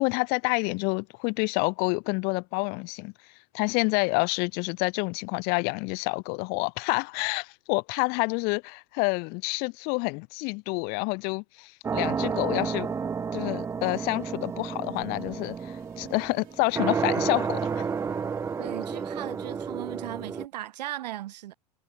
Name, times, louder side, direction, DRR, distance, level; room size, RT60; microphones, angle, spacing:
voice 1, 0.0-3.1 3.5-12.9 13.3-17.8, left 31 dB, 50° left, 1.3 m, -28 dB
old piano out of tune, 11.8-20.4, right 6 dB, 15° right, 0.6 m, -31 dB
sound 1, 15.2-20.0, right 18 dB, 45° right, 4.7 m, -56 dB
voice 2, 18.6-21.5, right 14 dB, 75° right, 1.9 m, -37 dB
hypercardioid pair, 120°, 21 cm